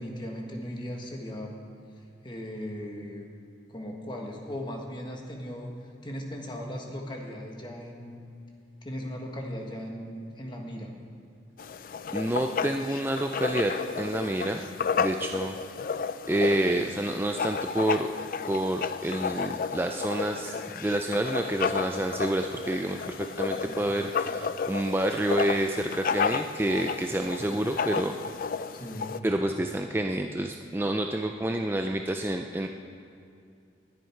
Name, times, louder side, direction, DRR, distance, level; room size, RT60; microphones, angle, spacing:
voice 1, 0.0-1.5 2.2-3.4 3.7-5.7 6.0-8.3 8.8-10.9 23.6-23.8 27.5-27.6 28.7-29.1, equal, 25° left, 1 dB, 1.6 m, -38 dB
Writing, 11.6-29.2, left 5 dB, 50° left, 0.4 m, -32 dB
voice 2, 12.1-14.7 15.0-15.6 16.3-18.1 18.5-20.6 20.8-28.1 29.2-32.7, right 1 dB, 10° right, 4 dB, 0.4 m, -28 dB
20.5 x 9.5 x 4.6 m, 2.6 s
head